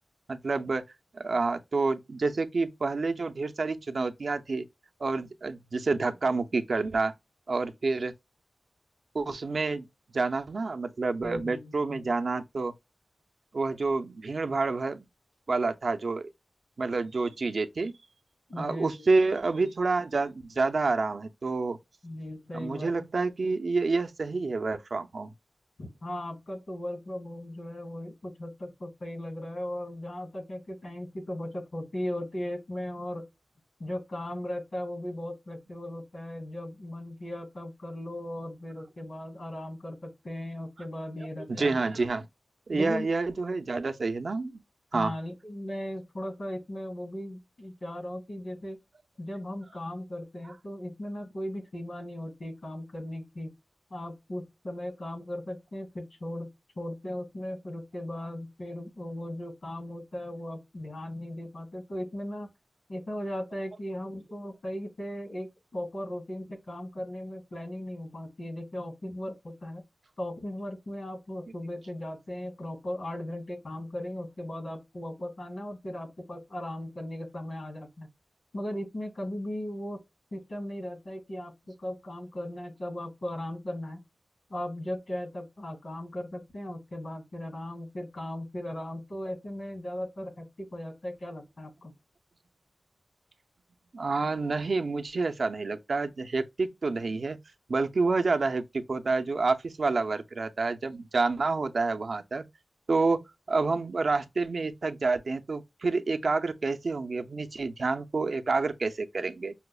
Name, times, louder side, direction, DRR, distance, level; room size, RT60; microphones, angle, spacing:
voice 1, 0.3-0.8 1.2-4.6 5.0-7.1 7.5-8.1 9.1-9.9 10.1-12.7 13.5-15.1 15.5-16.3 16.8-17.9 18.6-21.8 22.5-25.3 41.5-42.3 42.7-44.6 44.9-45.1 93.9-97.4 97.7-102.4 102.9-103.2 103.5-109.5, right 3 dB, 65° right, 0.5 m, -28 dB
voice 2, 11.2-12.1 18.5-19.0 22.0-22.9 25.8-33.2 33.8-41.8 42.7-43.1 44.9-48.8 49.2-53.5 53.9-56.5 56.8-62.5 62.9-69.8 70.2-78.1 78.5-80.0 80.3-84.0 84.5-91.9, left 1 dB, 75° left, 2.2 m, -37 dB
5.6 x 2.0 x 2.2 m
wide cardioid pair, 100°, 0 cm